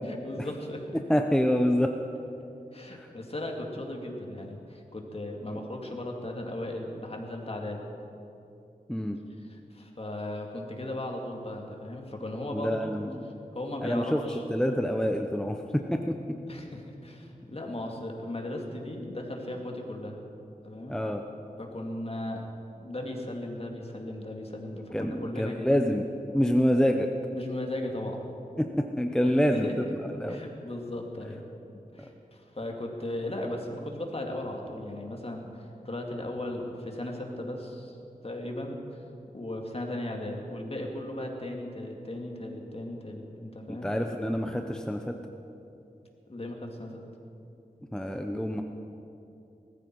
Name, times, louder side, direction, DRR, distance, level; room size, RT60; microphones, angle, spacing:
voice 1, 0.1-1.0 2.7-7.8 9.5-13.0 13.5-14.7 16.5-20.2 20.6-21.0 21.6-22.4 22.8-25.7 27.3-28.2 29.2-29.7 30.3-31.4 31.9-38.0 38.2-39.0 39.3-43.9 46.3-47.0, left 1 dB, 40° left, 1 dB, 2.4 m, -37 dB
voice 2, 0.9-1.9 2.9-3.1 5.5-5.6 8.9-9.2 12.5-13.2 13.8-14.2 14.5-16.4 20.9-21.2 24.9-26.1 26.3-27.1 28.6-29.8 30.2-30.4 43.7-45.2 47.9-48.6, equal, 5° left, 4 dB, 0.8 m, -27 dB
19.5 x 14.5 x 4.7 m, 2.7 s
wide cardioid pair, 55°, 15 cm